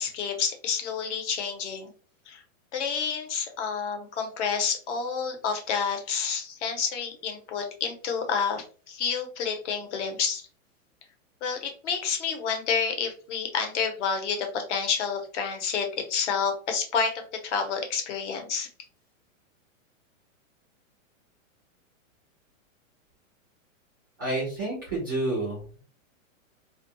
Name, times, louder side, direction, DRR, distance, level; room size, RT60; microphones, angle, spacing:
voice 1, 0.0-1.9 2.3-2.4 2.7-10.4 11.4-18.7, left 6 dB, 60° left, 5 dB, 0.9 m, -29 dB
voice 2, 24.2-25.8, right 2 dB, 20° right, -4 dB, 0.3 m, -29 dB
2.3 x 2.2 x 2.9 m, 0.39 s
supercardioid pair, 160°, 40 cm